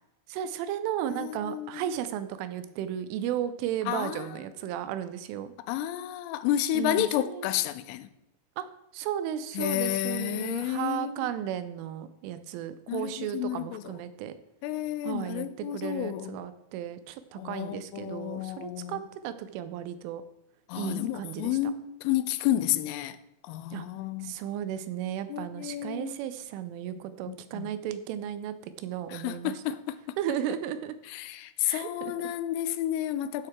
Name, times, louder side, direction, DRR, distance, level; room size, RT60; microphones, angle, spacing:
voice 1, 0.3-5.5 6.7-7.6 8.6-8.7 8.9-14.4 15.0-20.2 20.8-21.6 23.7-23.9 24.2-29.6 30.2-31.0 31.6-32.3, right 10 dB, 85° right, 3.2 m, -34 dB
voice 2, 1.1-1.8 3.9-4.3 5.7-8.1 9.6-11.3 12.9-13.8 14.6-16.4 17.4-19.0 20.7-23.2 23.4-24.4 25.3-26.2 27.3-27.7 29.1-30.0 31.1-33.5, left 12 dB, 90° left, 3.2 m, -31 dB
13.5 x 7.8 x 3.6 m
omnidirectional pair, 5.6 m